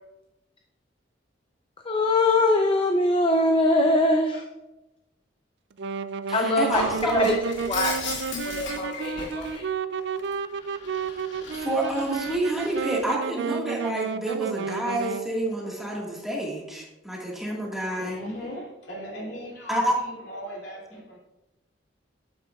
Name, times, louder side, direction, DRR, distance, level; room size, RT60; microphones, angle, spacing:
voice 1, 1.8-4.4 6.3-6.8 7.1-7.3 7.7-9.6, left 2 dB, 30° left, 3 dB, 0.5 m, -23 dB
Wind instrument woodwind instrument, 5.8-15.3, right 6 dB, 65° right, 0.4 m, -31 dB
voice 2, 6.3-7.3 11.5-18.2 19.7-19.9, right 1 dB, ahead, -3 dB, 1.7 m, -28 dB
Shatter, 6.7-9.6 10.0-13.1, left 4 dB, 85° left, 2.1 m, -38 dB
voice 3, 17.8-21.2, equal, 70° left, -3 dB, 2.6 m, -38 dB
9.1 x 8.0 x 2.4 m, 0.98 s
head